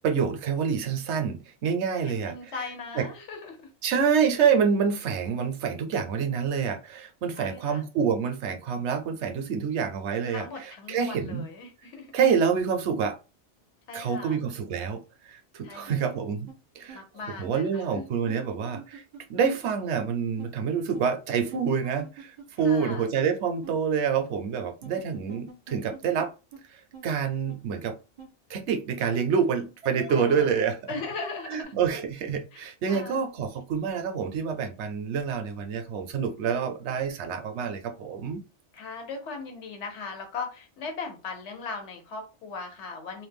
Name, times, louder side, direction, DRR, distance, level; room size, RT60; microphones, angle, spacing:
voice 1, 0.0-2.4 3.0-3.1 3.8-11.5 12.1-13.2 13.9-15.0 15.3-16.5 16.8-17.0 17.4-19.0 19.3-22.3 22.6-26.3 27.0-28.0 28.5-30.9 31.5-38.4, right 6 dB, 70° right, 0.8 m, -27 dB
voice 2, 2.2-3.7 7.3-7.9 10.3-12.1 13.9-14.4 15.6-16.2 16.9-18.0 22.6-23.1 30.1-30.6 30.9-31.7 32.5-33.3 38.7-43.3, left 4 dB, 75° left, 1.1 m, -38 dB
sound 1, 15.9-16.2 16.5-16.6 16.9-17.0 17.4-17.5 18.3-19.7 20.0-20.1 20.4-20.5 20.9-21.0 21.5-23.0 23.2-23.3 23.6-23.7 24.2-24.3 24.8-26.3 26.5-26.6 26.9-27.1 27.5-27.6 28.2-28.3 29.8-31.0 31.2-31.3 31.6-31.7, right 5 dB, 55° right, 0.4 m, -44 dB
2.6 x 2.1 x 3.4 m
omnidirectional pair, 1.2 m